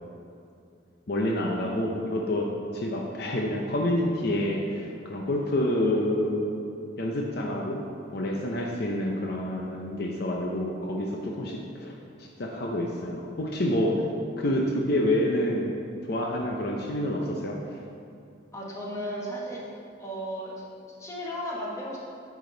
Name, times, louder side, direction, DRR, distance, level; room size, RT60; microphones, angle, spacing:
voice 1, 1.1-6.6 7.0-7.8 8.1-11.9 12.2-14.0 14.4-15.8 16.1-17.8, left 1 dB, 60° left, 0 dB, 0.7 m, -28 dB
voice 2, 18.5-19.6 20.0-22.0, equal, 15° left, -5 dB, 1.3 m, -35 dB
9.0 x 5.1 x 3.9 m, 2.5 s
head